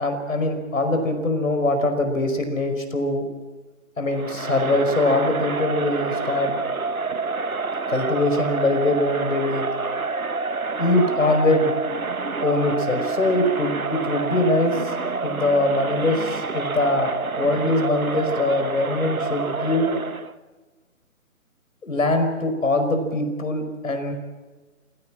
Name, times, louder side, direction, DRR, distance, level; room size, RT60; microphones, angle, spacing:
voice 1, 0.0-3.3 4.0-6.5 7.9-9.6 10.8-11.7 12.4-14.9 15.2-19.9 21.8-24.1, left 2 dB, 70° left, 7 dB, 5.3 m, -22 dB
Crowd, 4.2-20.3, right 4 dB, 85° right, 1.3 m, -28 dB
28.0 x 17.0 x 7.5 m, 1.3 s
figure-of-eight pair, 145°, 41 cm